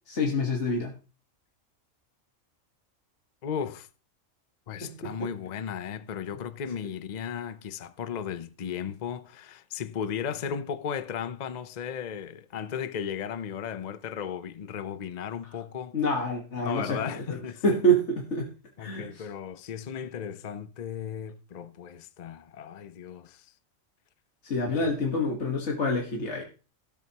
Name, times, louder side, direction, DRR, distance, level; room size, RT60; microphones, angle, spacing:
voice 1, 0.1-1.0 4.8-5.3 15.9-17.4 17.6-18.5 18.8-19.3 24.4-26.4, equal, 60° left, 1.8 m, -27 dB
voice 2, 3.4-3.9 4.7-15.9 16.6-17.7 18.8-23.5 24.8-24.9, left 8 dB, 40° left, 0.7 m, -35 dB
17.0 x 7.2 x 2.9 m
omnidirectional pair, 1.3 m